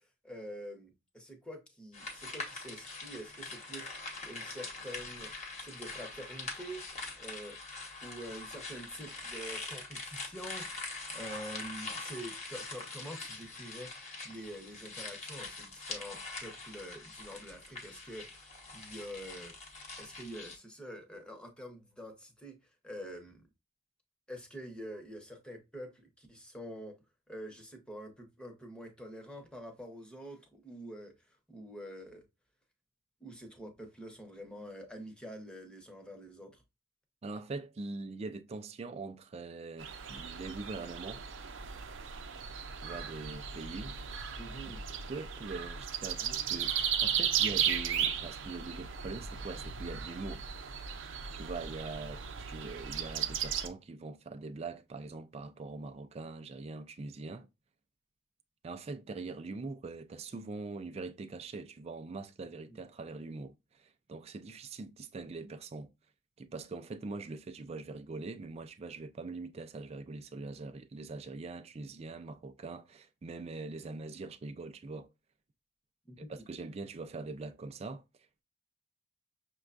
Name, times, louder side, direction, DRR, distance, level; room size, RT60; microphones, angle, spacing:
voice 1, 0.2-3.9 4.3-5.3 5.6-6.9 7.2-7.6 8.0-19.5 20.0-22.6 22.8-23.4 24.3-26.9 27.3-31.1 31.5-32.2 33.2-36.6 44.4-44.8 62.7-62.8 76.1-76.4, equal, 5° left, 0.9 m, -46 dB
sound 1, 1.9-20.6, left 3 dB, 35° left, 1.0 m, -43 dB
voice 2, 37.2-41.2 42.8-44.0 45.1-50.5 51.3-57.5 58.6-65.9 66.4-75.1 76.2-78.0, right 3 dB, 35° right, 0.4 m, -43 dB
sound 2, 39.8-53.7, right 8 dB, 80° right, 0.5 m, -36 dB
6.1 x 2.2 x 2.4 m
head